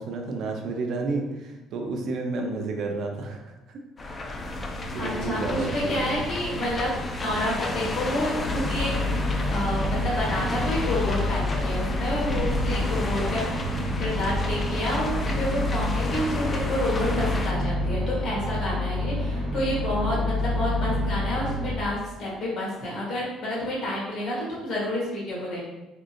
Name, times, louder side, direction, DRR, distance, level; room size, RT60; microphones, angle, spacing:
voice 1, 0.0-3.8 4.7-6.2 7.8-7.9 9.7-10.1 12.6-12.9 15.8-16.0 20.1-20.4, right 3 dB, 60° right, 2 dB, 0.5 m, -32 dB
sound 1, 4.0-17.5, left 2 dB, 25° left, 0.3 m, -32 dB
voice 2, 5.0-6.9 7.2-8.9 9.5-13.4 13.8-25.6, left 1 dB, 60° left, -5 dB, 1.4 m, -29 dB
sound 2, 8.4-21.7, left 1 dB, 10° right, 0.6 m, -28 dB
3.7 x 2.7 x 2.5 m, 1.0 s
cardioid pair, 130°, 0 cm